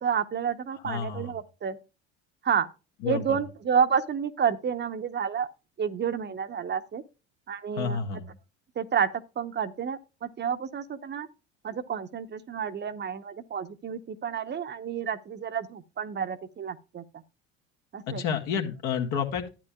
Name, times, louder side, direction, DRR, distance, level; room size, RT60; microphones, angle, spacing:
voice 1, 0.0-1.8 2.4-2.7 3.1-5.5 5.8-7.0 7.5-8.0 8.8-9.1 9.4-11.3 11.6-17.0 17.9-18.2, right 7 dB, 35° right, 0.9 m, -30 dB
voice 2, 0.8-1.3 3.0-3.4 7.8-8.3 18.1-19.5, left 6 dB, 65° left, 1.8 m, -30 dB
12.5 x 9.0 x 2.3 m
hypercardioid pair, 65°, 33 cm